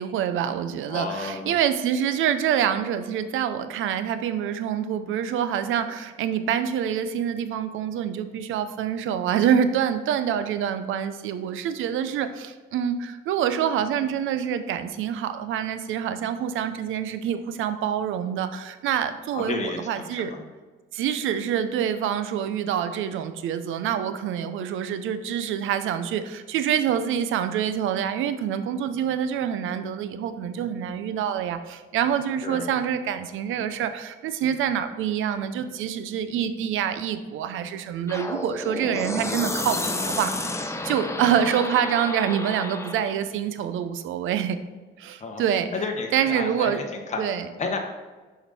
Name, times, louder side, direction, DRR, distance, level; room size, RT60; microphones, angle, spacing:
voice 1, 0.0-20.3 20.9-40.5 40.8-44.6 45.0-45.7 46.1-46.8 47.2-47.5, right 9 dB, 85° right, 11 dB, 0.6 m, -26 dB
voice 2, 0.9-1.6 19.3-20.4 32.4-32.7 45.2-45.4 45.7-47.2 47.6-47.8, left 3 dB, 35° left, 2 dB, 1.2 m, -31 dB
sound 1, 38.1-43.1, left 2 dB, 15° left, 0.8 m, -31 dB
7.2 x 5.1 x 4.1 m, 1.3 s
cardioid pair, 90°, 20 cm